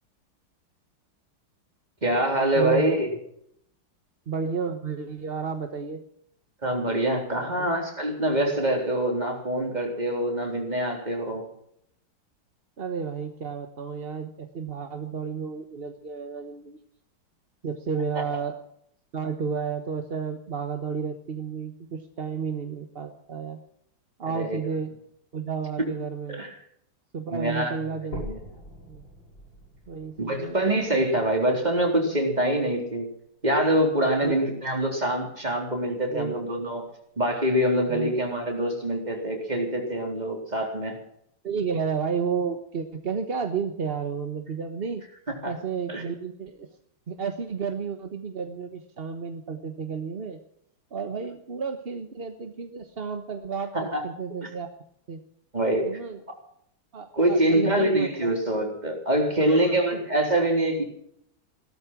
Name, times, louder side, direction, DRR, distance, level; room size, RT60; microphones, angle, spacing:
voice 1, 2.0-3.1 6.6-11.5 24.3-24.6 26.3-26.5 27.3-27.8 28.1-28.4 30.2-33.1 33.4-36.9 37.2-41.0 45.4-45.5 45.9-46.0 53.7-54.0 54.4-54.5 55.5-55.9 57.1-60.8, right 1 dB, 20° right, 2 dB, 3.9 m, -25 dB
voice 2, 2.5-3.0 4.3-6.0 7.4-7.5 12.8-16.8 17.6-18.6 19.1-23.6 24.2-24.9 25.3-26.4 27.1-28.2 28.9-29.0 29.9-30.5 34.2-34.4 36.1-36.3 37.9-38.1 41.4-45.0 45.4-46.7 47.1-50.4 50.9-54.7 55.1-55.2 55.8-56.2 56.9-58.3 59.5-59.8, right 5 dB, 35° right, 7 dB, 1.0 m, -32 dB
sound 1, 28.1-32.1 32.7-32.8 33.3-33.4 33.8-33.9 34.7-34.8, equal, 60° left, 7.5 m, -43 dB
17.0 x 13.0 x 6.1 m, 0.71 s
omnidirectional pair, 2.3 m